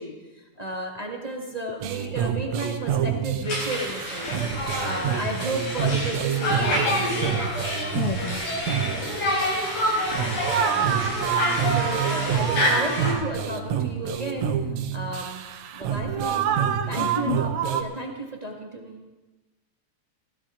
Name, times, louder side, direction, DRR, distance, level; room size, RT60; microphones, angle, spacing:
voice 1, 0.0-7.2 10.7-11.3 11.6-14.5 14.9-15.4 15.7-16.5 16.9-17.5 17.8-19.0, right 1 dB, 20° right, -1 dB, 1.3 m, -33 dB
sound 1, 1.8-17.8, right 8 dB, 75° right, 2.2 m, -27 dB
Conversation, 3.4-13.1, left 1 dB, 90° left, 5.7 m, -27 dB
voice 2, 7.9-8.4 8.9-9.2 11.7-11.8 17.0-17.4, left 10 dB, 70° left, 4 dB, 1.4 m, -31 dB
19.0 x 16.0 x 3.8 m, 1.1 s
omnidirectional pair, 3.4 m